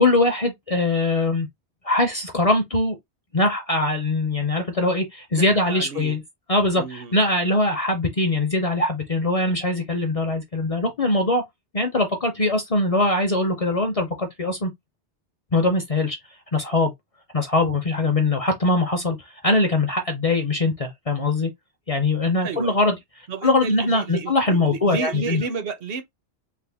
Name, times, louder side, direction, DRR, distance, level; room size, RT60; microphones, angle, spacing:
voice 1, 0.0-1.5 1.8-3.0 3.3-6.2 6.5-11.4 11.7-14.7 15.5-16.2 16.5-16.9 17.3-21.5 21.9-23.0 23.4-25.4, left 2 dB, 45° left, 0.5 m, -22 dB
voice 2, 5.3-6.2 6.8-7.2 22.4-22.8 23.3-26.0, right 5 dB, 65° right, 0.8 m, -32 dB
3.4 x 2.1 x 3.4 m
omnidirectional pair, 1.1 m